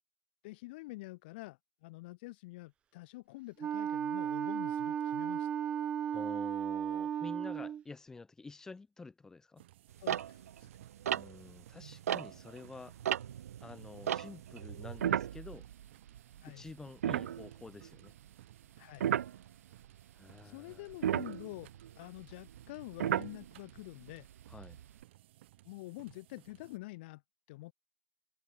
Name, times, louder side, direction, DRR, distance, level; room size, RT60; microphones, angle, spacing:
voice 1, 0.4-5.5 10.0-10.7 16.4-16.6 18.8-19.1 20.4-21.7 21.9-24.3 25.6-27.2 27.5-27.7, left 21 dB, 40° left, 2.9 m, -47 dB
Wind instrument woodwind instrument, 3.6-7.8, right 9 dB, 15° right, 0.4 m, -35 dB
voice 2, 6.1-9.6 11.0-12.9 13.6-15.7 16.4-18.1 20.2-20.9 24.5-24.8, left 3 dB, 5° left, 6.5 m, -49 dB
sound 1, 9.6-26.8, right 16 dB, 50° right, 7.8 m, -61 dB
sound 2, 10.0-12.6 12.9-16.4 16.7-16.8 17.0-17.9 19.0-19.4 20.9-23.8 24.4-25.0, right 10 dB, 70° right, 3.1 m, -35 dB
hypercardioid pair, 160°, 8 cm